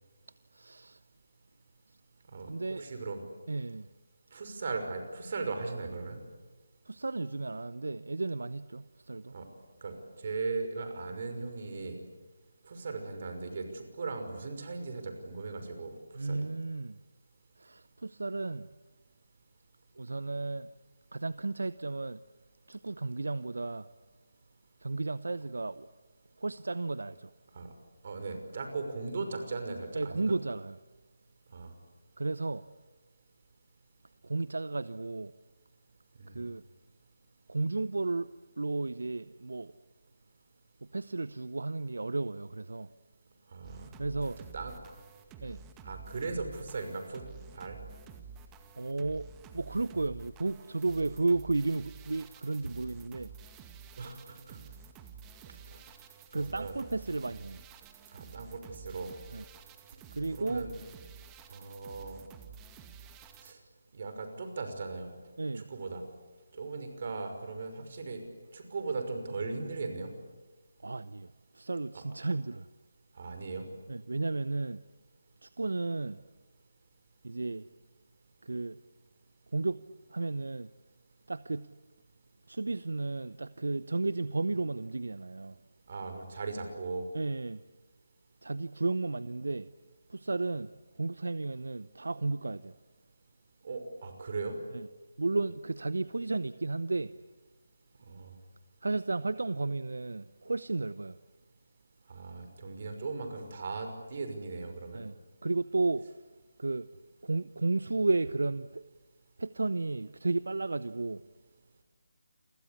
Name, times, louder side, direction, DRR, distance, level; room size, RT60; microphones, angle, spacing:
voice 1, 0.5-1.0 2.5-2.9 3.5-3.9 6.9-9.3 16.1-17.0 17.6-18.7 20.0-20.7 21.1-22.2 22.7-23.9 24.8-25.9 26.4-27.3 29.9-30.8 32.2-32.7 34.2-35.3 36.3-36.6 37.5-38.3 38.6-39.7 40.8-42.9 44.0-44.4 45.4-45.6 48.8-53.3 56.3-57.6 59.3-59.4 60.1-60.7 65.4-65.7 70.8-72.7 73.9-74.8 75.4-76.2 77.2-77.7 78.4-78.8 79.5-79.8 80.1-80.7 81.3-81.7 82.5-85.6 87.1-87.6 88.4-89.7 90.1-92.7 94.7-94.9 95.2-97.1 98.8-101.2 104.9-105.1 105.4-106.1 106.6-106.9 107.2-108.8 109.4-111.2, right 3 dB, 70° right, 0.8 m, -33 dB
voice 2, 2.3-3.2 4.3-6.2 9.3-9.5 9.8-9.9 10.2-12.0 12.6-16.5 27.5-27.7 28.0-30.3 31.5-31.7 36.2-36.4 43.5-43.9 44.5-44.7 45.8-47.2 47.5-47.8 54.0-54.6 55.5-55.8 56.3-56.8 58.1-59.1 60.3-60.7 61.5-62.2 63.4-63.6 63.9-65.1 65.5-66.0 66.5-68.2 68.5-70.1 71.9-72.0 73.2-73.7 85.9-87.1 93.6-94.6 98.1-98.3 102.1-105.0, right 3 dB, 45° right, 5.8 m, -38 dB
sound 1, 43.6-63.5, right 6 dB, 15° right, 2.0 m, -51 dB
29.5 x 24.0 x 8.4 m
figure-of-eight pair, 155°, 0 cm